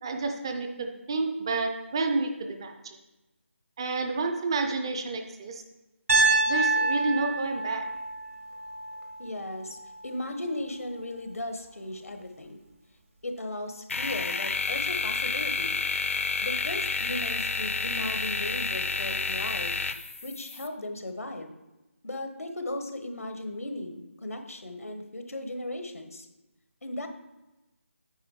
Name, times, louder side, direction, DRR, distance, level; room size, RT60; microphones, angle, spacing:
voice 1, 0.0-3.0 3.8-5.6 6.5-7.9, right 3 dB, 20° right, 5 dB, 0.4 m, -30 dB
Piano, 6.1-10.2, right 2 dB, 70° right, 1.6 m, -27 dB
voice 2, 9.2-9.8 10.0-12.6 13.2-15.8 16.4-19.8 20.2-21.5 22.0-26.3 26.8-27.1, left 1 dB, 90° left, 6 dB, 1.1 m, -36 dB
sound 1, 13.9-20.7, left 4 dB, 65° left, 0.5 m, -30 dB
8.6 x 4.0 x 4.6 m, 1.0 s
figure-of-eight pair, 165°, 8 cm